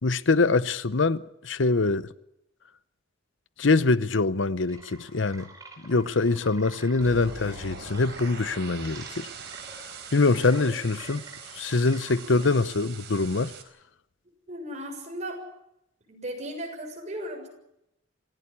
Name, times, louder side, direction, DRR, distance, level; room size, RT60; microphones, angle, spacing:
voice 1, 0.0-2.1 3.6-5.5 5.8-9.3 10.1-11.2 11.5-13.5, left 3 dB, 70° left, 0.8 m, -24 dB
sound 1, 4.6-12.6, right 2 dB, 20° right, 4.7 m, -48 dB
sound 2, 7.0-13.6, right 5 dB, 60° right, 4.3 m, -42 dB
voice 2, 10.5-11.0 14.5-15.4 16.0-17.5, equal, 35° right, 7.1 m, -37 dB
27.0 x 16.0 x 8.6 m
head